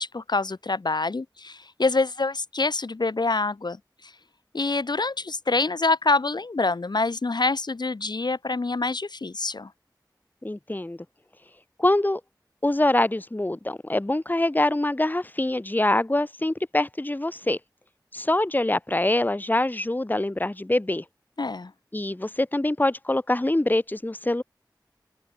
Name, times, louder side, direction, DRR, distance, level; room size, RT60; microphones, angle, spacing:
voice 1, 0.0-3.8 4.5-9.7 21.4-21.7, left 3 dB, 70° left, 1.1 m, -26 dB
voice 2, 10.4-11.0 11.8-12.2 12.6-17.6 18.1-21.0 21.9-24.4, left 1 dB, 25° left, 1.0 m, -24 dB
open air
wide cardioid pair, 45°, 8 cm